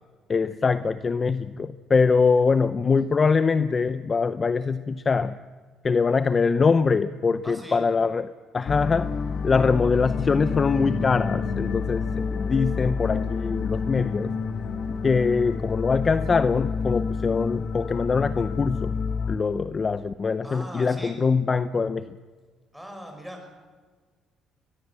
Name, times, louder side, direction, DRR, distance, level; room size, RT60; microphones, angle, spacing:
voice 1, 0.3-5.4 5.8-9.1 9.4-14.3 15.0-18.9 19.3-22.1, left 5 dB, 30° left, 13 dB, 0.6 m, -23 dB
voice 2, 7.4-7.8 20.4-21.2 22.7-23.5, equal, ahead, 2 dB, 5.9 m, -40 dB
sound 1, 8.7-19.4, left 5 dB, 50° left, 1.7 m, -28 dB
22.5 x 20.5 x 7.4 m, 1.5 s
cardioid pair, 130°, 0 cm